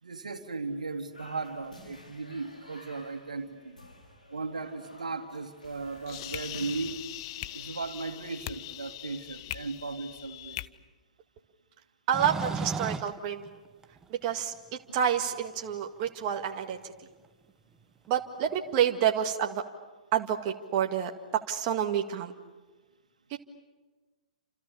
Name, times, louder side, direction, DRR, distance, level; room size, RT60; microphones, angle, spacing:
voice 1, 0.0-3.8 4.3-7.1 7.5-10.6, right 3 dB, 75° right, 6 dB, 2.6 m, -37 dB
sound 1, 1.1-8.3, left 1 dB, 85° left, 5.2 m, -52 dB
sound 2, 5.6-10.6, left 15 dB, 45° left, 0.8 m, -41 dB
sound 3, 12.1-14.3 15.1-15.2 16.7-16.8 18.5-18.6, right 4 dB, 15° right, 1.2 m, -34 dB
voice 2, 12.1-13.5 14.1-16.9 18.1-19.6 20.1-21.1 21.5-22.3 23.3-23.4, right 9 dB, 35° right, 4 dB, 1.9 m, -29 dB
29.5 x 28.0 x 7.1 m, 1.3 s
figure-of-eight pair, 115°, 4 cm